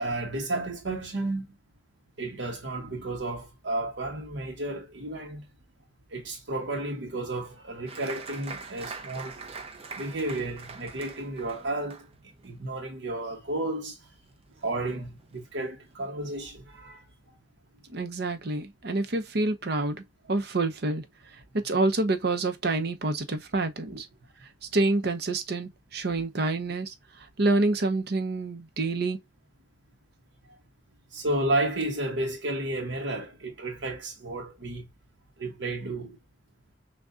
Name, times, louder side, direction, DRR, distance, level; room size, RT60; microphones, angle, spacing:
voice 1, 0.0-1.4 2.2-5.4 6.1-9.4 10.0-12.1 12.4-14.1 14.6-17.0 23.9-24.0 31.1-34.9 35.4-36.2, right 2 dB, 90° right, 0.9 m, -32 dB
Applause, 7.9-14.9 15.2-15.9 16.3-16.4 16.7-17.2, right 4 dB, 35° right, 0.7 m, -44 dB
voice 2, 17.9-21.0 21.5-24.1 24.6-29.2, right 2 dB, 65° right, 0.8 m, -27 dB
6.2 x 2.3 x 2.5 m
head